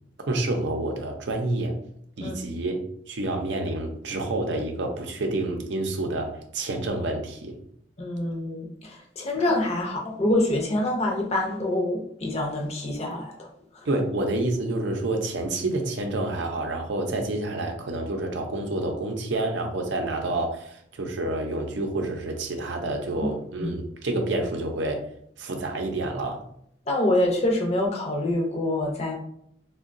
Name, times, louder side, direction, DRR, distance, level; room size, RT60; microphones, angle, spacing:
voice 1, 0.3-1.8 2.2-2.8 3.1-7.6 13.9-25.1 25.4-26.4, right 2 dB, 75° right, 3 dB, 0.5 m, -28 dB
voice 2, 8.0-13.9 23.6-23.7 26.9-29.2, left 1 dB, 35° left, 0 dB, 0.6 m, -26 dB
3.7 x 2.2 x 2.5 m, 0.70 s
head